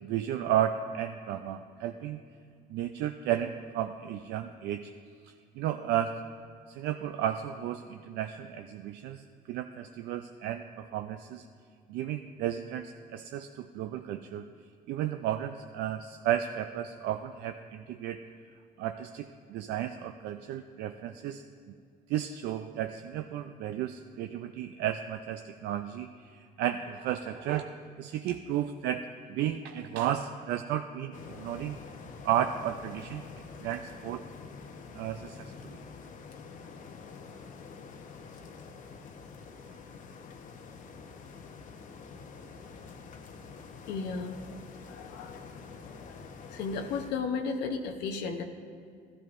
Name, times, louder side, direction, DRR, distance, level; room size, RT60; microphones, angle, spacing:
voice 1, 0.0-2.2 2.7-4.9 5.2-6.1 6.7-11.5 11.9-14.5 14.9-18.2 18.8-21.4 22.1-31.8 32.2-33.2 33.6-34.2 35.0-35.8, right 11 dB, 80° right, 7 dB, 0.4 m, -33 dB
sound 1, 31.1-47.1, left 5 dB, 50° left, 0.8 m, -47 dB
voice 2, 43.9-44.4 44.9-45.5 45.9-48.4, left 5 dB, 80° left, 3 dB, 0.8 m, -35 dB
14.0 x 12.5 x 2.5 m, 2.2 s
cardioid pair, 110°, 17 cm